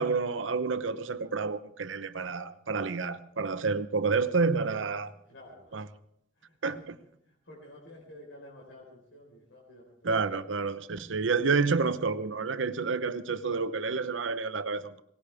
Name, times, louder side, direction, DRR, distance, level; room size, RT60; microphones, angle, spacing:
voice 1, 0.0-5.1 5.7-5.8 6.6-7.0 10.0-15.0, right 4 dB, 90° right, 0.8 m, -29 dB
voice 2, 5.1-5.8 6.3-6.8 7.2-10.6, left 1 dB, 80° left, 4.4 m, -52 dB
22.0 x 18.5 x 3.5 m
head